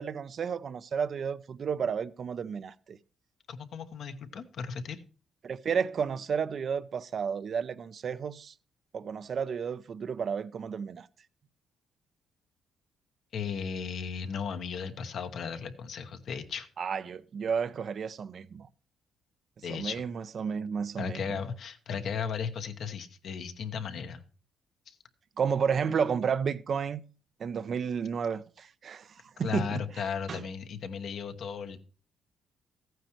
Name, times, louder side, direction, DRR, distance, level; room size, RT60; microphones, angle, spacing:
voice 1, 0.0-3.0 5.4-8.5 8.9-11.1 16.8-18.7 19.7-21.4 25.4-27.0 27.4-29.8 30.3-30.4, right 6 dB, 50° right, 0.6 m, -32 dB
voice 2, 3.5-5.0 13.3-16.7 19.6-20.0 21.0-24.2 24.9-25.0 29.4-31.8, left 6 dB, 65° left, 1.1 m, -36 dB
14.5 x 9.2 x 3.1 m
cardioid pair, 90°, 0 cm